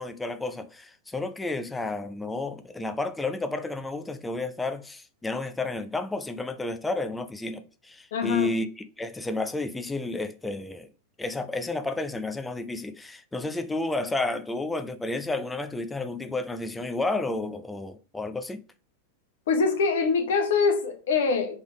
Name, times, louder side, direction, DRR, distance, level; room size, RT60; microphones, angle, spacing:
voice 1, 0.0-8.7 9.0-10.9 11.2-18.6, left 2 dB, 10° left, 0.5 m, -31 dB
voice 2, 8.1-8.5 19.5-21.6, left 5 dB, 60° left, 0.9 m, -24 dB
3.6 x 3.4 x 3.1 m
figure-of-eight pair, 90°, 0 cm